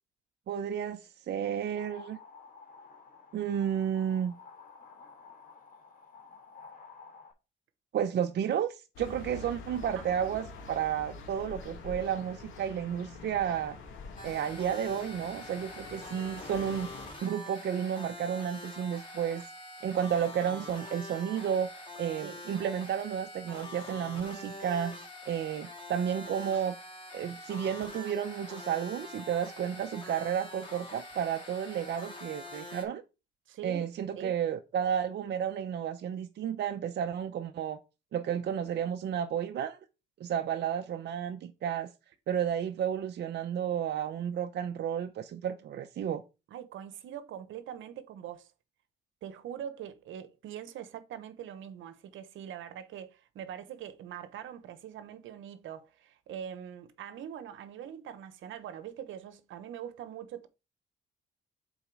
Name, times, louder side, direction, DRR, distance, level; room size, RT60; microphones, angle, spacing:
voice 1, 0.5-2.2 3.3-4.3 7.9-13.8 14.2-16.9 17.2-19.4 19.8-21.7 22.0-25.0 25.3-26.7 27.1-33.0 33.6-37.8 38.1-39.8 40.2-41.9 42.3-46.2, right 9 dB, 60° right, 0.6 m, -32 dB
sound 1, 1.4-7.3, left 5 dB, 45° left, 2.7 m, -52 dB
sound 2, 9.0-17.1, left 4 dB, 85° left, 1.9 m, -46 dB
voice 2, 9.9-10.5 22.2-22.4 33.5-33.9 34.2-34.4 46.5-48.5 49.2-60.5, right 9 dB, 80° right, 1.0 m, -43 dB
sound 3, 14.2-32.8, left 1 dB, 25° left, 3.0 m, -45 dB
7.4 x 4.1 x 4.7 m
cardioid pair, 90°, 20 cm